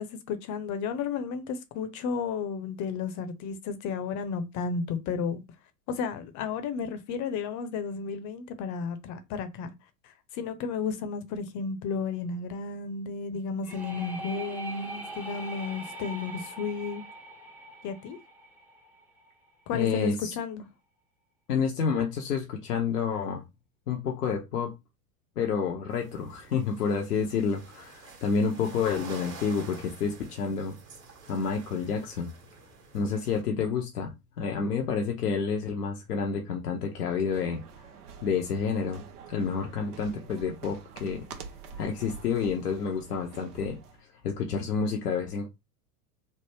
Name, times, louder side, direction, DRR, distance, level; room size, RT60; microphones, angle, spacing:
voice 1, 0.0-5.4 5.9-9.7 10.3-17.0 17.8-18.2 19.7-20.6, left 5 dB, 40° left, 0.7 m, -33 dB
sound 1, 13.6-19.3, right 1 dB, 5° right, 0.6 m, -42 dB
voice 2, 19.7-20.3 21.5-23.4 23.9-24.7 25.4-30.8 31.3-32.3 32.9-37.6 38.2-39.0 39.3-41.2 41.8-43.8 44.2-45.5, left 5 dB, 90° left, 0.7 m, -29 dB
sound 2, 25.9-33.4, right 5 dB, 35° right, 1.3 m, -49 dB
sound 3, 36.8-44.0, right 6 dB, 75° right, 0.8 m, -47 dB
3.2 x 2.1 x 3.2 m
hypercardioid pair, 95°, 46 cm